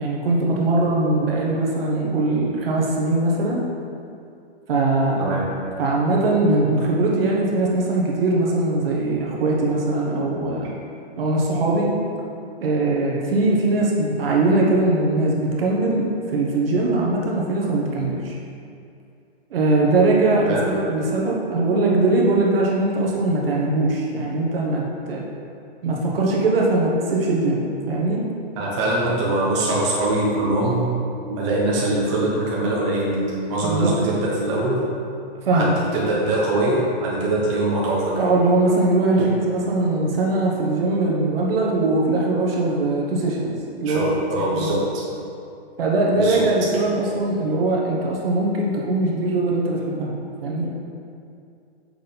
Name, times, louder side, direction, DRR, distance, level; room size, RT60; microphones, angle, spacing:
voice 1, 0.0-3.6 4.7-5.4 5.8-10.7 11.2-11.9 12.6-18.3 19.5-25.2 25.8-28.2 33.6-34.0 35.4-35.7 38.2-44.1 44.5-44.8 45.8-50.1 50.4-50.7, right 2 dB, 60° right, -2 dB, 1.3 m, -21 dB
voice 2, 5.2-5.5 20.4-20.7 28.6-30.8 31.3-34.8 35.1-35.2 35.5-38.2 39.2-39.3 43.8-45.0 46.2-46.4, right 2 dB, 30° right, -5 dB, 1.2 m, -23 dB
6.5 x 4.1 x 5.2 m, 2.5 s
hypercardioid pair, 165°, 32 cm